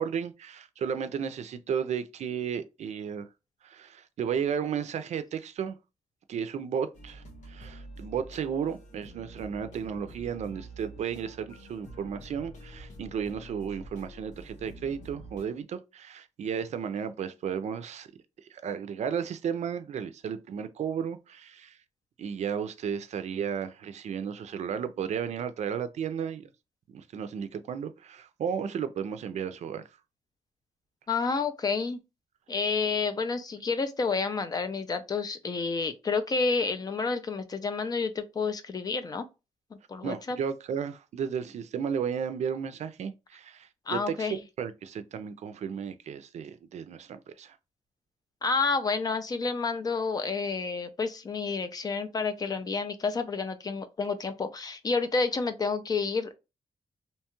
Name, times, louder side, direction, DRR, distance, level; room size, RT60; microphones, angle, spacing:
voice 1, 0.0-3.3 3.6-5.8 6.3-18.1 18.5-21.8 22.2-26.5 26.9-29.8 40.0-47.6, right 7 dB, 70° right, 0.4 m, -34 dB
sound 1, 6.9-15.5, right 1 dB, 80° left, 1.1 m, -47 dB
voice 2, 31.1-32.0 32.5-39.3 39.9-40.4 43.9-44.4 48.4-56.4, left 4 dB, 30° left, 0.4 m, -29 dB
2.8 x 2.2 x 2.9 m
wide cardioid pair, 170°, 12 cm